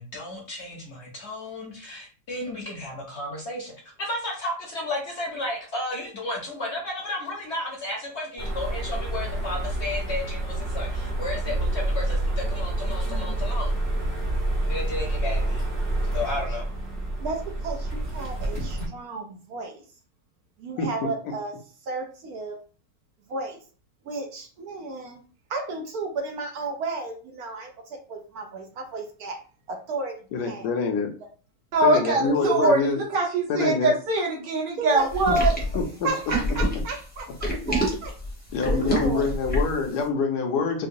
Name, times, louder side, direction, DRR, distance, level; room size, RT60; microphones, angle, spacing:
voice 1, 0.0-13.7 14.7-15.6 16.1-16.7, left 2 dB, 50° left, -2 dB, 0.9 m, -33 dB
sound 1, 8.4-18.9, right 1 dB, 40° right, 0.9 m, -28 dB
voice 2, 17.2-19.8 20.6-21.6 21.8-22.6 23.3-23.6 24.0-25.2 25.5-29.4 29.7-30.7 31.9-32.0 32.3-32.7 34.8-35.1 36.0-38.1 38.7-39.3, right 3 dB, 70° right, 3 dB, 1.0 m, -33 dB
voice 3, 30.3-31.1 31.8-33.0 33.5-33.9 35.3-35.4 35.7-36.1 38.5-40.9, left 4 dB, 75° left, 3 dB, 1.2 m, -25 dB
voice 4, 31.7-35.6, right 2 dB, 85° right, -2 dB, 1.8 m, -22 dB
sound 2, 35.1-39.8, equal, 10° left, 0.7 m, -26 dB
4.8 x 2.2 x 2.6 m, 0.39 s
omnidirectional pair, 1.9 m